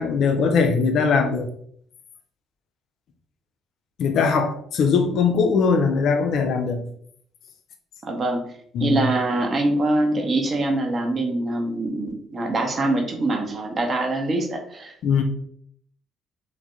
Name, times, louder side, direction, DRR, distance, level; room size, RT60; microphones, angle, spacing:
voice 1, 0.0-1.5 4.0-6.9 8.7-9.0 15.0-15.2, left 5 dB, 55° left, 0.3 m, -20 dB
voice 2, 8.0-8.4 8.8-14.9, right 2 dB, 40° right, 0.6 m, -24 dB
3.3 x 2.1 x 2.6 m
figure-of-eight pair, 45°, 0 cm